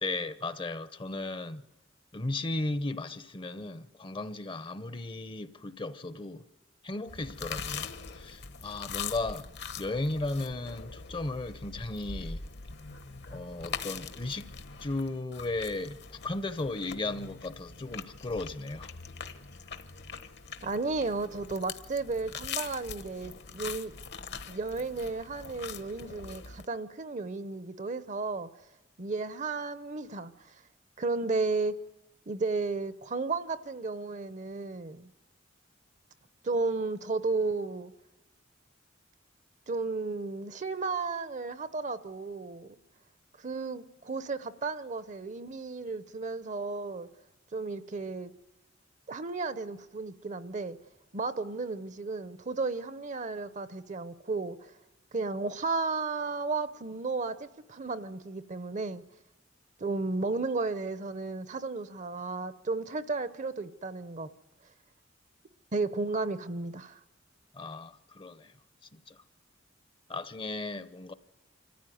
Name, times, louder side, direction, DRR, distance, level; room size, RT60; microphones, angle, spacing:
voice 1, 0.0-1.6 2.1-6.4 6.8-9.5 9.8-12.4 13.3-14.5 14.8-18.9 67.5-68.5 68.9-69.2 70.1-71.1, left 2 dB, 25° left, 0.7 m, -35 dB
sound 1, 7.1-26.6, left 6 dB, 60° left, 1.1 m, -42 dB
voice 2, 20.6-23.9 24.5-28.5 29.0-30.5 31.0-31.8 32.3-35.1 36.4-37.9 39.7-42.8 43.4-47.1 47.5-48.3 49.1-50.8 51.1-54.7 55.1-59.0 59.8-64.3 65.7-67.0, right 3 dB, 40° right, 0.7 m, -33 dB
25.5 x 14.5 x 9.3 m
head